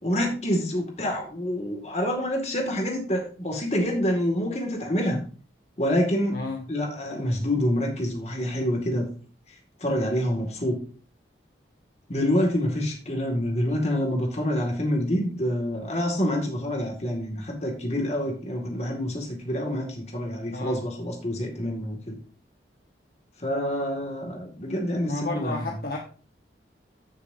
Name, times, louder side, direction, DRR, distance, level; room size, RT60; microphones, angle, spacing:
voice 1, 0.0-5.2 5.8-6.4 6.7-9.1 9.8-10.8 12.1-22.2 23.4-25.8, equal, 35° left, 2 dB, 2.1 m, -27 dB
voice 2, 6.3-6.7 20.5-20.8 25.1-26.0, left 2 dB, 55° left, 1 dB, 1.1 m, -31 dB
14.0 x 6.6 x 2.7 m, 0.39 s
head